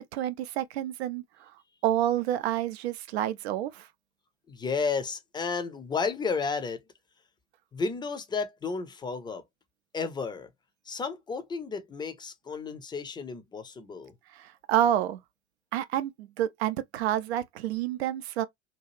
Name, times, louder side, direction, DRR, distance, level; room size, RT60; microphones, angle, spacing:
voice 1, 0.1-1.2 1.8-3.9 14.3-15.2 15.7-18.4, right 11 dB, 60° right, 0.5 m, -28 dB
voice 2, 4.5-6.8 7.7-9.4 9.9-10.5 10.9-14.1, left 5 dB, 10° left, 0.6 m, -32 dB
2.8 x 2.3 x 3.0 m
figure-of-eight pair, 70°, 36 cm